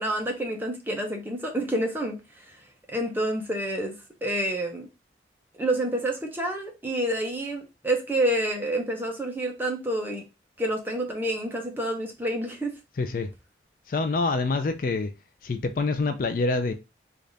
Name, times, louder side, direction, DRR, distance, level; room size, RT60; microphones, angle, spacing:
voice 1, 0.0-2.6 2.9-3.9 4.2-4.9 5.6-10.2 10.6-12.7, right 1 dB, 10° right, 0.7 m, -28 dB
voice 2, 13.0-13.3 13.9-15.1 15.4-16.7, left 3 dB, 50° left, 0.4 m, -26 dB
3.3 x 2.5 x 3.8 m
head